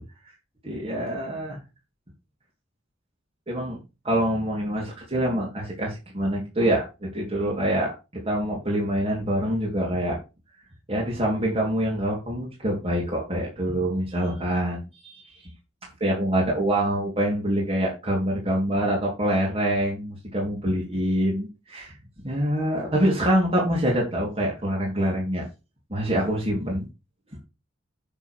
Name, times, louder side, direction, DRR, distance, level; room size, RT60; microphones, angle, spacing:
voice 1, 0.6-1.6 3.5-3.8 4.0-10.2 10.9-14.8 15.0-15.2 16.0-21.9 22.2-25.4 25.9-26.9, right 1 dB, 30° right, -4 dB, 3.4 m, -25 dB
8.7 x 7.1 x 4.8 m, 0.28 s
head